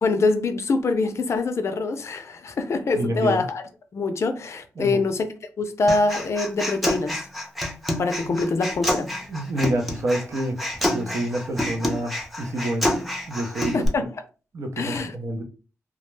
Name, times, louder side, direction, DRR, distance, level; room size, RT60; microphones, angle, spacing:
voice 1, 0.0-3.6 3.9-5.3 5.6-7.3 8.0-9.1 13.7-14.1 14.8-15.1, left 3 dB, 60° left, 0.4 m, -24 dB
voice 2, 2.9-3.4 4.8-5.0 8.2-8.4 9.3-10.6 10.9-12.9 13.3-13.8 14.5-15.4, right 1 dB, 65° right, 0.6 m, -28 dB
Human voice, 5.9-13.9, left 1 dB, ahead, 0.6 m, -28 dB
2.3 x 2.1 x 3.1 m
wide cardioid pair, 100°, 5 cm